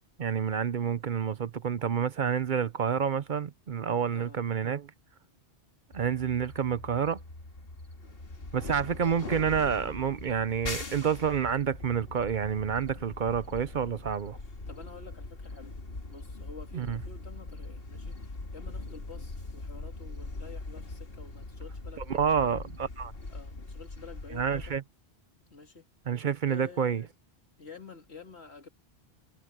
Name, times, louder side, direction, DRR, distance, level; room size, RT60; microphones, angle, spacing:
voice 1, 0.2-4.9 5.9-7.2 8.5-14.4 16.7-17.0 22.1-23.1 24.3-24.8 26.1-27.0, right 7 dB, 55° right, 0.8 m, -29 dB
voice 2, 4.1-4.4 8.5-9.2 14.7-15.8 16.1-22.6 23.3-24.7 25.5-25.9 26.4-27.1 27.6-28.7, left 5 dB, 85° left, 2.8 m, -49 dB
sound 1, 5.9-24.8, left 2 dB, 65° left, 2.2 m, -42 dB
omnidirectional pair, 1.1 m